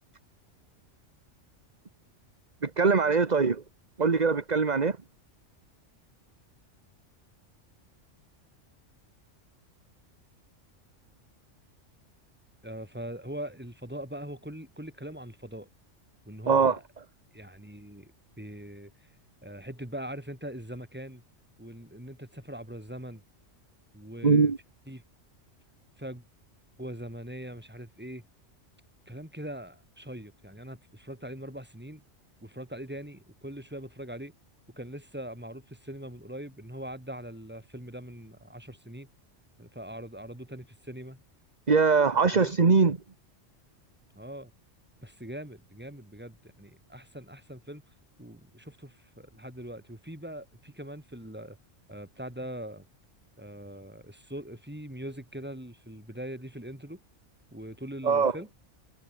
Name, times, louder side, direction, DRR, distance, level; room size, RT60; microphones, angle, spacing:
voice 1, 2.6-3.6 4.0-5.0 16.5-16.7 24.2-24.6 41.7-43.0 58.0-58.3, right 5 dB, 35° right, 1.4 m, -22 dB
voice 2, 12.6-15.7 16.3-16.8 17.3-18.9 19.4-21.2 21.6-23.2 23.9-24.5 24.9-25.0 26.0-26.2 26.8-28.2 29.1-32.0 32.4-34.3 34.8-39.1 39.6-41.2 42.3-42.5 44.2-44.5 45.0-47.8 48.2-51.6 51.9-52.8 53.4-57.0 57.5-58.5, right 1 dB, 10° right, 3.8 m, -41 dB
omnidirectional pair, 1.3 m